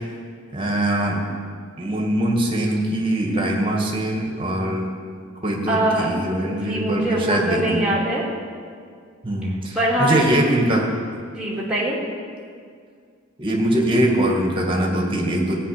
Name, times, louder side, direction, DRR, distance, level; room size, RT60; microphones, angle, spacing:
voice 1, 0.5-1.2 1.8-4.9 5.4-7.9 9.2-10.8 13.4-15.5, right 1 dB, 25° right, 0 dB, 1.9 m, -22 dB
voice 2, 5.7-6.1 6.4-8.2 9.7-10.5 11.4-12.0, right 1 dB, 5° right, -6 dB, 2.5 m, -22 dB
16.5 x 5.6 x 8.8 m, 2.1 s
head